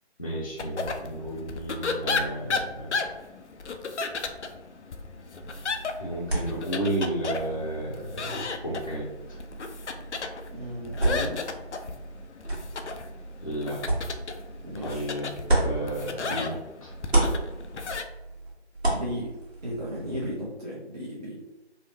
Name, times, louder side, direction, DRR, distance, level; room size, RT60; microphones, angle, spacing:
voice 1, 0.2-2.9 6.0-9.4 13.4-13.8 14.8-16.9, right 1 dB, 30° left, -8 dB, 0.6 m, -33 dB
sound 1, 0.6-18.0, left 4 dB, 80° left, 0.5 m, -34 dB
sound 2, 5.4-16.6 16.9-20.3, right 2 dB, 65° right, 1.4 m, -32 dB
voice 2, 10.5-11.4 14.6-15.1 18.9-19.3 19.6-21.4, equal, 35° right, -7 dB, 0.6 m, -35 dB
3.9 x 2.0 x 2.7 m, 1.0 s
figure-of-eight pair, 150°, 34 cm